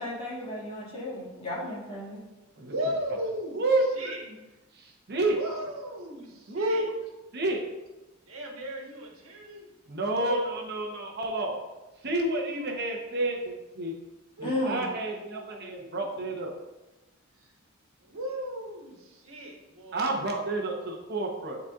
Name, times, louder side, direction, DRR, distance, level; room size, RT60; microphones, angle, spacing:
voice 1, 0.0-2.2 14.4-14.8, left 1 dB, 30° left, -6 dB, 2.1 m, -34 dB
voice 2, 2.6-3.6 3.9-4.2 5.3-6.8 8.3-9.7 10.1-10.5 14.4-16.1 17.4-17.5 18.0-20.1, equal, 85° right, 0 dB, 1.3 m, -36 dB
voice 3, 4.7-5.4 6.5-6.9 7.3-7.6 9.9-11.6 12.0-13.9 14.4-16.5 19.9-21.6, right 2 dB, 55° right, 0 dB, 0.9 m, -29 dB
10.5 x 4.1 x 2.4 m, 1.0 s
head